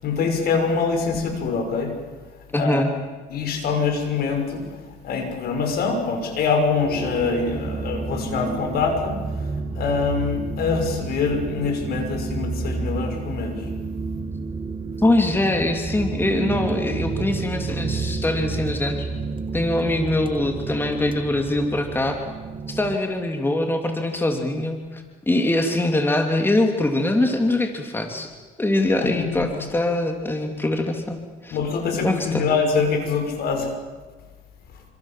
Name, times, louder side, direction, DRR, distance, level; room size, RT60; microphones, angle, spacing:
voice 1, 0.0-1.9 2.5-2.9 3.3-4.7 5.0-13.7 29.0-29.5 31.5-33.7, left 5 dB, 65° left, 5 dB, 6.4 m, -24 dB
voice 2, 2.5-2.9 15.0-19.1 19.5-22.2 22.7-28.3 28.6-31.6 32.0-32.5, left 2 dB, 15° left, 4 dB, 3.1 m, -23 dB
sound 1, 6.7-23.0, right 4 dB, 30° right, 1.7 m, -30 dB
28.0 x 26.5 x 7.6 m, 1.4 s
cardioid pair, 110°, 17 cm